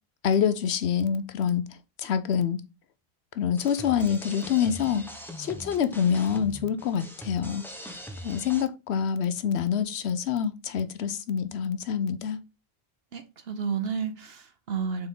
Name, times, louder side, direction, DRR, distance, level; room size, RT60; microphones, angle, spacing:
voice 1, 0.2-1.6 2.0-2.6 3.4-5.0 5.4-7.6 8.2-12.4, left 8 dB, 90° left, 1.0 m, -26 dB
sound 1, 3.6-8.6, equal, ahead, 1.0 m, -42 dB
voice 2, 13.1-15.1, right 6 dB, 70° right, 1.3 m, -31 dB
7.0 x 4.3 x 3.8 m
omnidirectional pair, 1.1 m